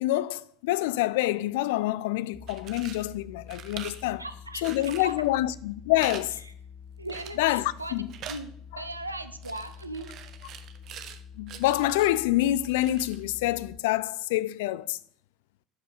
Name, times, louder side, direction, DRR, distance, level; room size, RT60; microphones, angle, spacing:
voice 1, 0.0-4.2 4.6-6.4 7.4-8.1 8.7-8.8 11.4-15.0, left 15 dB, 65° left, 0.3 m, -27 dB
sound 1, 2.3-13.8, left 7 dB, 30° left, 1.0 m, -47 dB
sound 2, 2.3-3.1 3.5-4.1 4.6-5.2 6.0-6.2 6.5-6.6 7.1-7.5 7.8-8.4 9.4-11.2 11.5-12.2 12.6-13.2, right 9 dB, 50° right, 0.7 m, -43 dB
voice 2, 4.2-5.1 6.4-6.5 7.0-8.0 8.3-8.5 8.8-10.1, right 2 dB, 90° right, 0.5 m, -38 dB
12.0 x 5.0 x 4.0 m
figure-of-eight pair, 65°, 0 cm